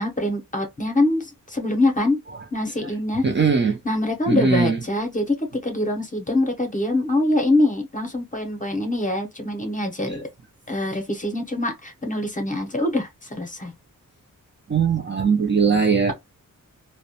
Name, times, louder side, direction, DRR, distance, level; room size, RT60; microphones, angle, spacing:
voice 1, 0.0-2.2 2.5-3.3 3.8-10.3 10.7-13.7, left 1 dB, 25° left, 0.7 m, -24 dB
voice 2, 3.2-3.8 4.3-4.8 14.7-16.1, right 5 dB, 35° right, 0.5 m, -20 dB
2.3 x 2.1 x 2.7 m
wide cardioid pair, 100°, 33 cm